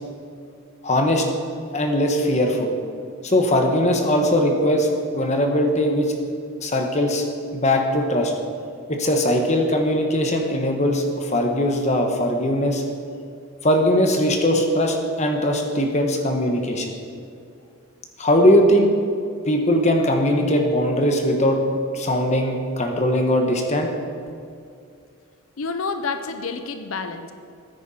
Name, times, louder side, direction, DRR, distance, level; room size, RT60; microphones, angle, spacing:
voice 1, 0.8-1.3 1.7-2.7 3.2-4.9 5.1-6.1 6.6-7.2 7.5-8.3 8.9-12.8 13.6-16.9 18.2-18.9 19.5-21.6 21.9-23.9, left 1 dB, 30° left, 3 dB, 1.2 m, -20 dB
voice 2, 25.6-27.3, left 4 dB, 75° left, 9 dB, 0.6 m, -29 dB
14.5 x 9.5 x 4.3 m, 2.4 s
head